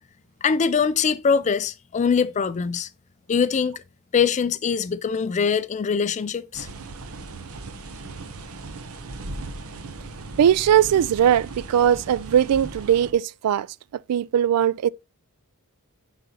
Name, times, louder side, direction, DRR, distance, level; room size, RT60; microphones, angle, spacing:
voice 1, 0.4-2.9 3.3-3.8 4.1-6.7, left 6 dB, 30° left, 0.4 m, -23 dB
sound 1, 6.5-13.1, right 3 dB, 70° right, 0.8 m, -38 dB
voice 2, 10.4-13.7 14.1-14.9, right 9 dB, 85° right, 0.3 m, -19 dB
9.9 x 4.0 x 2.8 m
head